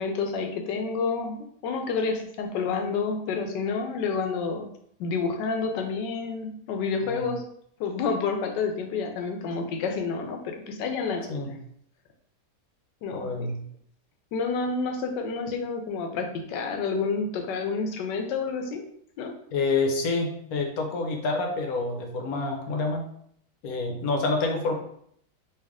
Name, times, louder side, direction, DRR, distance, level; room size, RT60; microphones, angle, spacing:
voice 1, 0.0-4.7 5.0-7.4 7.8-11.3 13.0-13.5 14.3-18.8 19.2-19.4, left 4 dB, 85° left, 5 dB, 1.3 m, -29 dB
voice 2, 13.1-13.6 19.5-23.1 23.6-24.7, left 3 dB, 65° left, 2 dB, 1.1 m, -27 dB
3.3 x 2.9 x 3.5 m, 0.66 s
omnidirectional pair, 1.8 m